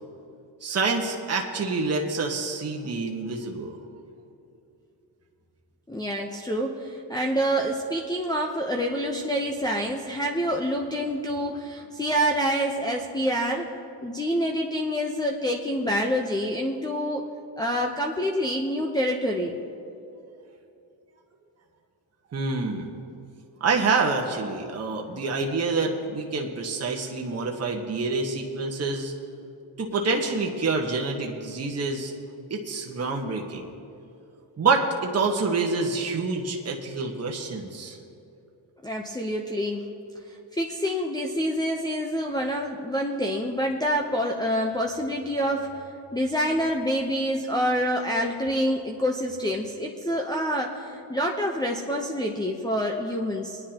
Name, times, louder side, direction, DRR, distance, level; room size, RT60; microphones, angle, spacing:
voice 1, 0.6-3.8 22.3-22.9 23.6-29.1 29.8-32.1 32.5-33.7 34.6-38.0, right 4 dB, 30° right, 0 dB, 1.3 m, -27 dB
voice 2, 5.9-13.7 14.0-17.2 17.6-19.6 38.8-39.9 40.3-45.7 46.1-53.6, equal, 10° left, -2 dB, 0.8 m, -27 dB
20.0 x 10.0 x 2.9 m, 2.7 s
cardioid pair, 95°, 47 cm